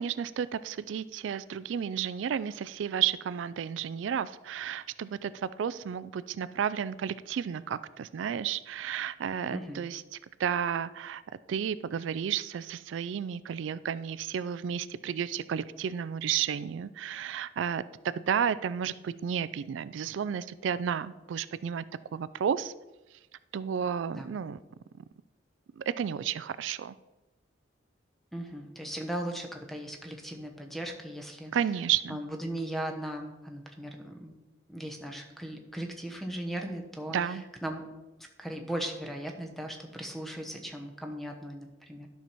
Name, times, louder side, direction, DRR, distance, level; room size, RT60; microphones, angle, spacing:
voice 1, 0.0-10.0 10.4-11.2 11.5-21.8 22.1-22.7 23.5-24.6 25.0-25.1 25.8-26.9 31.5-32.2 37.1-37.4, right 8 dB, 80° right, 16 dB, 0.3 m, -32 dB
voice 2, 9.5-9.8 24.1-24.3 28.3-31.5 32.1-34.3 34.7-37.8 38.4-42.1, right 1 dB, ahead, 4 dB, 1.0 m, -38 dB
12.0 x 5.7 x 4.5 m, 1.1 s
head